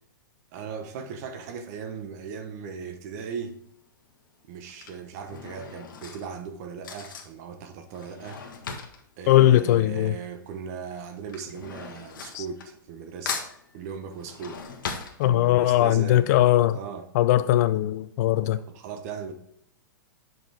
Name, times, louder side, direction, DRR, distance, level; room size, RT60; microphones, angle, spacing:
voice 1, 0.5-3.6 4.5-8.4 9.2-13.5 13.7-14.6 15.2-17.1 18.7-19.3, right 6 dB, 50° right, 0.9 m, -38 dB
Drawer open or close / Cutlery silverware, 3.3-3.6 4.5-10.4 10.6-13.0 13.3-15.8 16.2-16.3 16.5-16.6, left 6 dB, 75° left, 1.2 m, -39 dB
voice 2, 9.3-10.2 15.2-16.8 17.1-18.6, left 13 dB, 50° left, 0.4 m, -20 dB
7.2 x 5.3 x 3.4 m
hypercardioid pair, 130°, 11 cm